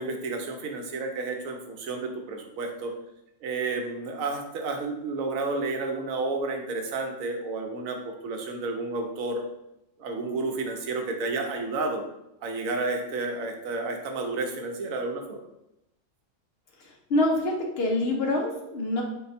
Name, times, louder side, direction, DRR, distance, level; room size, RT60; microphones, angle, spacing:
voice 1, 0.0-2.9 3.4-9.4 10.0-12.0 12.4-15.4, right 3 dB, 80° right, 3 dB, 1.1 m, -31 dB
voice 2, 16.8-19.0, left 2 dB, 55° left, 1 dB, 0.8 m, -26 dB
4.2 x 2.3 x 4.0 m, 0.87 s
omnidirectional pair, 1.4 m